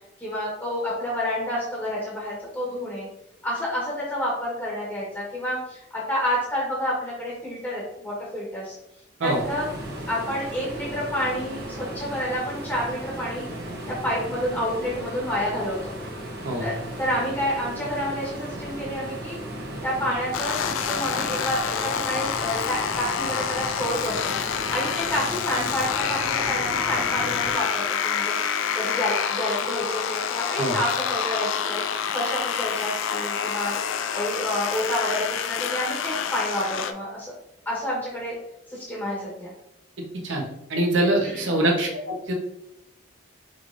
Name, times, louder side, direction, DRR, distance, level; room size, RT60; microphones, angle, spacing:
voice 1, 0.2-3.1 3.4-8.8 9.2-9.7 10.1-13.4 13.9-15.9 16.6-19.4 19.8-24.3 24.7-28.3 28.7-33.7 34.1-37.3 37.6-38.3 38.7-39.5 41.3-41.4, equal, 10° left, -6 dB, 1.2 m, -29 dB
sound 1, 9.2-27.5, right 1 dB, 55° right, 0.9 m, -36 dB
sound 2, 20.3-36.9, left 7 dB, 85° left, 0.4 m, -27 dB
voice 2, 40.7-42.3, right 1 dB, 80° right, 0 dB, 1.0 m, -23 dB
5.3 x 3.3 x 2.5 m, 0.82 s
head